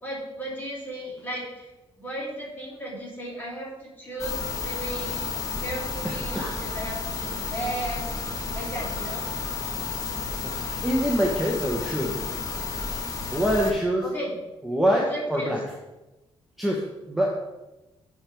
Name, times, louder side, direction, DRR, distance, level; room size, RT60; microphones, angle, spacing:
voice 1, 0.0-1.7 2.0-8.1 8.5-9.3 14.0-14.3 14.9-15.6, right 1 dB, 20° left, -5 dB, 2.9 m, -35 dB
sound 1, 4.2-13.7, left 4 dB, 35° left, 1.2 m, -32 dB
voice 2, 6.0-6.5 10.4-12.2 13.3-14.0 14.6-15.6 16.6-17.3, equal, ahead, -2 dB, 1.0 m, -25 dB
11.0 x 4.5 x 3.4 m, 1.0 s
cardioid pair, 110°, 10 cm